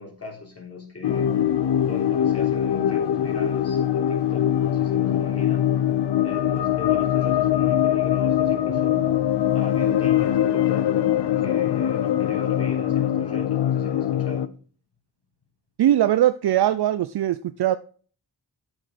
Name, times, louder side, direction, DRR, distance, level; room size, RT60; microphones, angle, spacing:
voice 1, 0.0-1.4 1.9-5.7 6.2-9.1 9.5-14.5, left 3 dB, 35° left, 3.5 m, -38 dB
sound 1, 1.0-14.5, left 10 dB, 85° left, 0.7 m, -22 dB
voice 2, 15.8-17.8, right 12 dB, 70° right, 0.5 m, -20 dB
8.5 x 6.3 x 5.0 m
wide cardioid pair, 95°, 40 cm